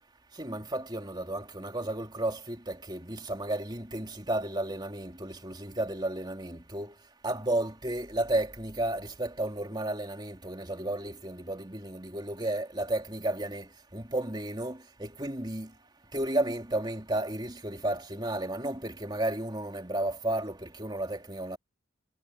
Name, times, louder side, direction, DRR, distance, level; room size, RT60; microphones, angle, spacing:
voice 1, 0.4-6.9 7.2-15.7 16.1-21.6, right 1 dB, 20° right, 3.0 m, -33 dB
head